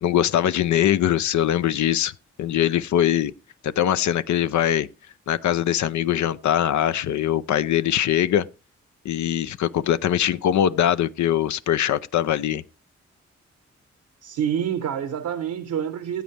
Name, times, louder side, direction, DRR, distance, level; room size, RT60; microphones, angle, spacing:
voice 1, 0.0-2.1 2.4-3.3 3.6-4.9 5.3-8.5 9.0-12.6, left 10 dB, 70° left, 0.5 m, -22 dB
voice 2, 14.2-16.2, right 9 dB, 80° right, 0.9 m, -27 dB
15.5 x 7.9 x 3.3 m
supercardioid pair, 45°, 30 cm